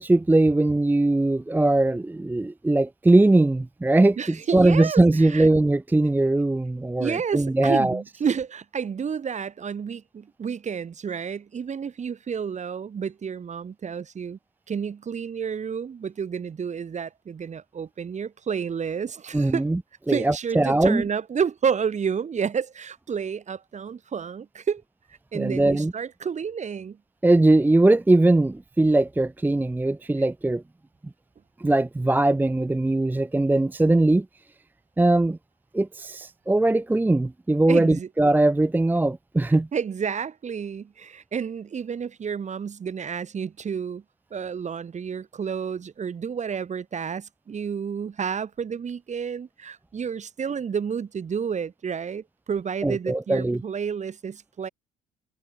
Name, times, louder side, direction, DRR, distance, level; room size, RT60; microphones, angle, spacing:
voice 1, 0.0-8.0 19.3-19.8 20.1-21.0 25.3-25.9 27.2-30.6 31.6-34.3 35.0-35.4 35.7-39.7 52.8-53.6, right 2 dB, 10° right, 0.7 m, -20 dB
voice 2, 4.2-5.5 7.0-14.4 14.7-19.6 20.1-24.8 25.3-27.0 37.7-38.1 39.7-44.0 44.3-54.7, right 7 dB, 35° right, 2.7 m, -30 dB
figure-of-eight pair, 55°, 20 cm